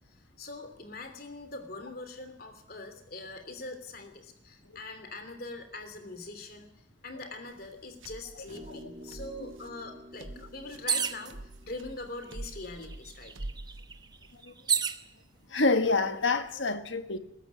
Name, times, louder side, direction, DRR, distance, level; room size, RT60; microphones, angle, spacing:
voice 1, 0.4-6.7 7.0-11.4 11.6-13.3, left 2 dB, 50° left, 3.2 m, -42 dB
sound 1, 7.5-14.4, right 2 dB, 80° right, 1.1 m, -46 dB
sound 2, 8.5-13.0, equal, 35° right, 1.3 m, -51 dB
sound 3, 10.9-11.3 12.2-12.3 12.6-15.0 15.8-16.3, right 7 dB, 20° right, 0.9 m, -31 dB
voice 2, 15.5-17.2, left 3 dB, 65° left, 1.5 m, -27 dB
21.0 x 13.0 x 9.6 m
head